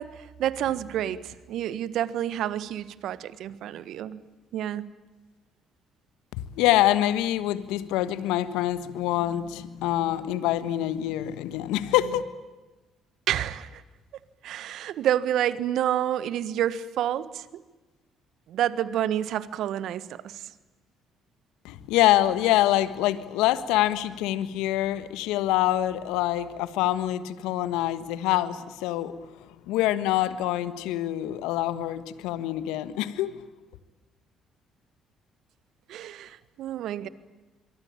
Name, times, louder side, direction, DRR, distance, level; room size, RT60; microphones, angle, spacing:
voice 1, 0.0-4.2 4.5-4.8 13.3-13.8 14.4-17.6 18.5-20.4 35.9-37.1, right 11 dB, 65° right, 16 dB, 1.5 m, -29 dB
voice 2, 6.4-12.2 21.6-29.1 29.7-33.3, left 14 dB, 75° left, 14 dB, 1.4 m, -25 dB
26.5 x 23.5 x 8.9 m, 1.2 s
hypercardioid pair, 55°, 0 cm